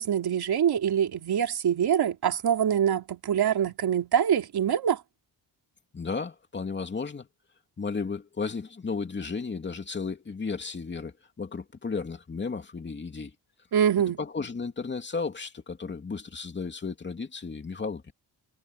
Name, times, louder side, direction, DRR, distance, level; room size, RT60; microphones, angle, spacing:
voice 1, 0.0-5.0 13.7-14.2, right 9 dB, 65° right, 3.2 m, -24 dB
voice 2, 5.9-7.3 7.8-13.3 14.2-18.1, left 4 dB, 25° left, 2.7 m, -34 dB
wide cardioid pair, 165°, 41 cm